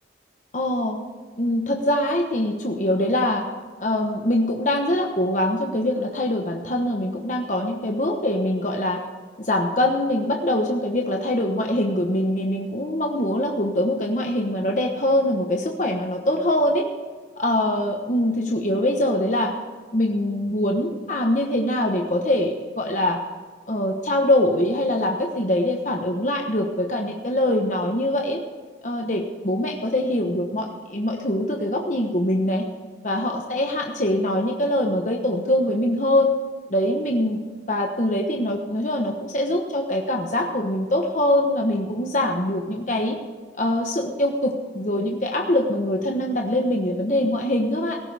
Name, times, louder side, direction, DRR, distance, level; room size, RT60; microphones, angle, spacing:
voice 1, 0.5-1.0 1.4-3.4 3.8-9.0 9.4-16.9 17.4-19.5 19.9-23.2 23.7-28.4 28.8-32.6 33.0-36.4 36.7-37.4 37.7-43.2 43.6-48.0, left 1 dB, 40° left, 2 dB, 1.1 m, -23 dB
17.5 x 14.5 x 3.5 m, 1.5 s
head